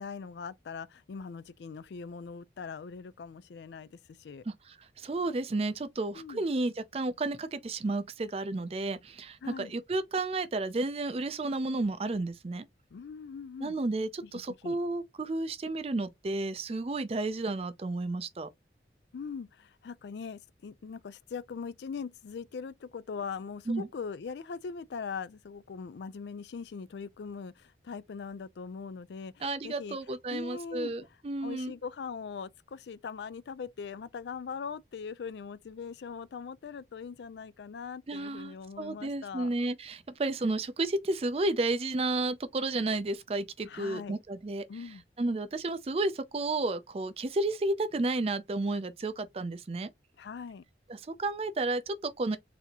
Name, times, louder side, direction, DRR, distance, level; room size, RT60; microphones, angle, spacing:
voice 1, 0.0-4.4 6.1-6.5 9.4-9.7 12.9-13.7 14.2-14.8 19.1-30.0 30.3-30.9 31.4-39.5 43.7-44.2 44.7-45.0 50.2-50.6, left 5 dB, 75° left, 0.4 m, -41 dB
voice 2, 4.5-12.7 13.6-18.5 23.7-23.9 29.4-31.8 38.1-44.7 45.2-49.9 50.9-52.4, right 2 dB, 35° right, 0.4 m, -32 dB
4.1 x 2.7 x 2.8 m
head